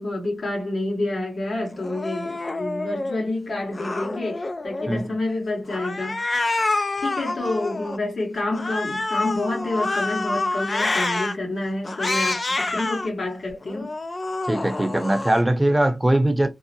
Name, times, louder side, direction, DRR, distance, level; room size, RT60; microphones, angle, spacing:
voice 1, 0.0-6.3 6.6-13.9, left 2 dB, 70° left, 1.3 m, -28 dB
Cat, 1.8-3.2 3.7-5.1 5.7-8.0 8.5-11.3 11.8-13.1 13.6-15.4, left 2 dB, 50° left, 0.4 m, -27 dB
voice 2, 14.5-16.5, right 1 dB, 20° right, 0.7 m, -21 dB
2.7 x 2.0 x 2.8 m
cardioid pair, 50°, 0 cm